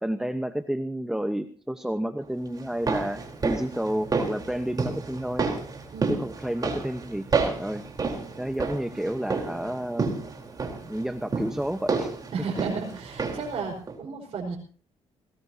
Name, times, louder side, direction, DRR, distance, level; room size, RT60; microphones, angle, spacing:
voice 1, 0.0-5.5 6.1-7.9 8.4-10.1 10.8-12.1, right 1 dB, 5° right, 8 dB, 1.0 m, -30 dB
sound 1, 2.6-13.6 13.9-14.0, right 4 dB, 35° right, 3.9 m, -30 dB
voice 2, 5.9-6.2 12.3-14.6, right 5 dB, 55° right, -2 dB, 5.0 m, -33 dB
21.5 x 18.5 x 2.8 m, 0.41 s
cardioid pair, 115°, 12 cm